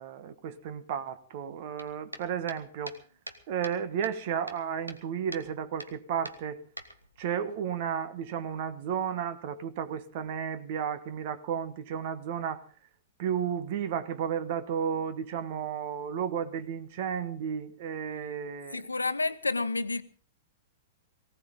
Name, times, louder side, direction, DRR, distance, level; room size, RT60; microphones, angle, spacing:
voice 1, 0.0-3.0 3.5-6.6 7.2-12.7 13.2-18.8, right 8 dB, 50° right, 1.3 m, -33 dB
sound 1, 1.8-3.8 4.0-5.0 5.3-5.5 5.8-5.9 6.3-7.3, right 1 dB, 90° right, 1.5 m, -44 dB
voice 2, 18.7-20.0, left 3 dB, 80° left, 1.0 m, -30 dB
19.0 x 17.5 x 3.8 m
figure-of-eight pair, 105°, 0 cm